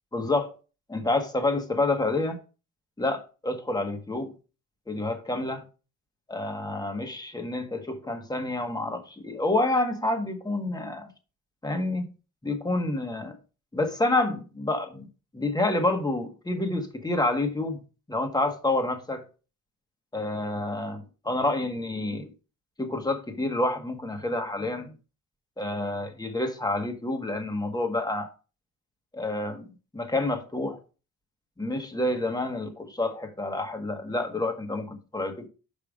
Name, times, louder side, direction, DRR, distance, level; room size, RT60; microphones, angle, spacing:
voice 1, 0.1-0.5 0.9-2.4 3.0-4.3 4.9-5.6 6.3-11.1 11.6-12.1 12.4-13.4 13.7-15.1 15.3-17.8 18.1-19.3 20.1-22.3 22.8-24.9 25.6-28.3 29.1-30.8 31.6-35.5, left 2 dB, 15° left, 1.6 m, -28 dB
5.7 x 5.4 x 5.0 m
cardioid pair, 90°, 30 cm